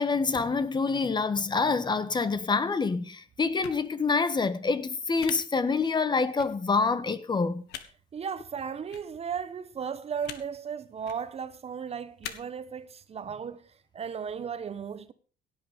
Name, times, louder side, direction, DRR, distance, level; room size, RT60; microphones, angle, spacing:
voice 1, 0.0-7.6, left 4 dB, 25° left, 1.4 m, -26 dB
sound 1, 3.6-3.8 5.2-5.3 6.4-6.5 7.7-7.8 8.9-9.0 10.2-10.4 11.0-11.2 12.2-12.3, left 11 dB, 85° left, 1.8 m, -39 dB
voice 2, 8.1-15.1, right 7 dB, 35° right, 1.1 m, -36 dB
16.5 x 9.4 x 5.2 m
cardioid pair, 110°, 17 cm